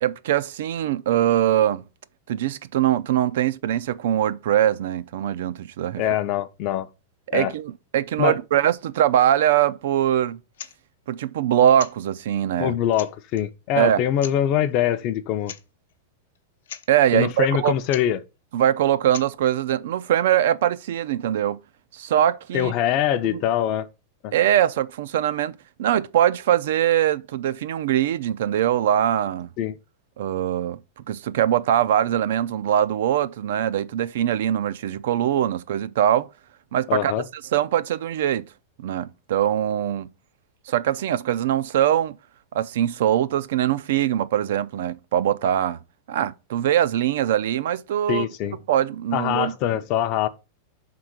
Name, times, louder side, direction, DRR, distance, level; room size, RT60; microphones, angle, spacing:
voice 1, 0.0-1.8 2.3-6.0 7.3-10.4 11.1-12.8 13.7-14.1 16.9-17.7 18.5-21.6 21.9-22.7 23.2-23.4 24.3-29.5 30.2-30.8 31.1-36.3 36.7-37.1 37.5-38.5 38.8-40.1 40.7-42.2 42.5-45.8 46.1-48.3 48.7-49.5, right 11 dB, 60° right, 0.4 m, -22 dB
voice 2, 6.0-6.9 7.3-7.5 8.2-8.4 12.6-15.5 17.1-18.2 22.5-23.9 24.2-24.3 29.6-29.8 36.9-37.2 48.1-48.6 49.1-50.3, left 11 dB, 30° left, 0.5 m, -23 dB
sound 1, 10.5-10.8 11.7-12.0 12.6-12.7 12.9-13.4 14.2-14.4 15.4-15.6 15.9-16.0 16.4-16.5 16.6-16.9 17.9-18.1 19.1-19.3, left 10 dB, 85° left, 0.6 m, -38 dB
5.5 x 3.8 x 5.9 m
supercardioid pair, 175°, 0 cm